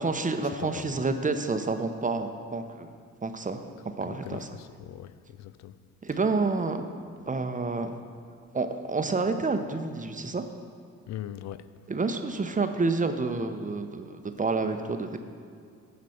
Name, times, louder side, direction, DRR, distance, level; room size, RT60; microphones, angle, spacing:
voice 1, 0.0-2.9 3.2-3.6 4.0-4.5 6.0-6.9 7.3-7.9 8.5-10.4 11.9-15.2, right 3 dB, 20° right, 7 dB, 0.8 m, -29 dB
voice 2, 0.6-1.0 4.1-5.1 5.4-5.7 11.1-11.7, left 11 dB, 45° left, 15 dB, 0.5 m, -40 dB
15.0 x 5.2 x 4.4 m, 2.3 s
hypercardioid pair, 55°, 40 cm